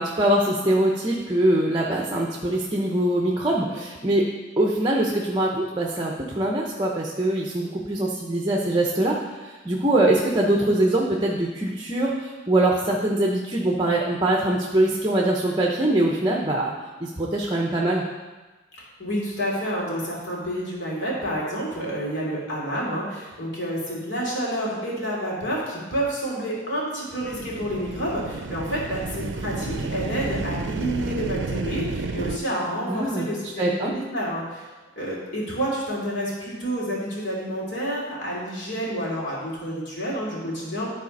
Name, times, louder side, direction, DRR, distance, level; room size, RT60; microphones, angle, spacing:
voice 1, 0.0-4.3 4.6-16.7 17.0-18.0 32.9-33.3 33.6-33.9, right 1 dB, 20° right, -1 dB, 0.8 m, -23 dB
voice 2, 19.0-34.6 35.0-40.9, equal, 65° left, -4 dB, 2.8 m, -29 dB
sound 1, 27.2-32.4, right 3 dB, 65° right, 0.5 m, -31 dB
11.5 x 4.2 x 5.3 m, 1.2 s
head